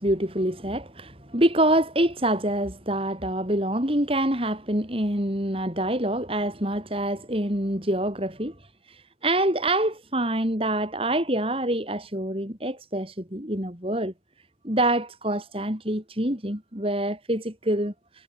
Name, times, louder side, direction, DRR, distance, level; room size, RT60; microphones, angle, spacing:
voice 1, 0.0-8.5 8.9-14.1 14.6-18.2, right 1 dB, 30° right, 4.8 m, -26 dB
head